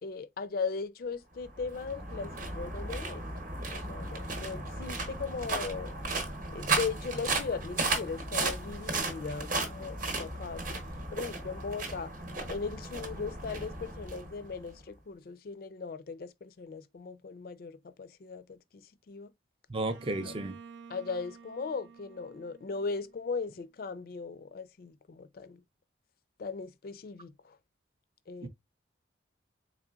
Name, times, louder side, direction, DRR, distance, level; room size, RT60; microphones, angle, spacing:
voice 1, 0.0-3.3 3.7-5.9 6.5-10.8 11.1-12.1 12.5-19.3 20.2-20.3 20.9-25.6 26.4-27.6 28.3-28.5, left 4 dB, 50° left, 0.4 m, -38 dB
sound 1, 1.4-14.8, right 3 dB, 45° right, 0.8 m, -35 dB
voice 2, 19.7-20.6 28.4-28.5, right 2 dB, 30° right, 0.4 m, -33 dB
Bowed string instrument, 19.9-23.6, right 6 dB, 80° right, 0.5 m, -52 dB
3.8 x 3.1 x 2.3 m
head